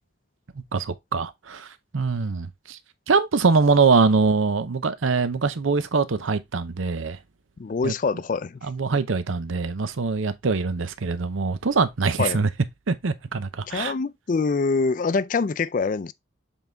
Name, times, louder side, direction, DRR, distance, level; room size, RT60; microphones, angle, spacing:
voice 1, 0.7-1.7 1.9-2.8 3.1-7.2 7.8-7.9 8.6-12.5 12.9-13.9, right 4 dB, 85° right, 0.7 m, -23 dB
voice 2, 7.6-8.6 12.2-12.4 13.7-16.1, left 4 dB, 40° left, 0.3 m, -25 dB
7.1 x 4.0 x 3.4 m
head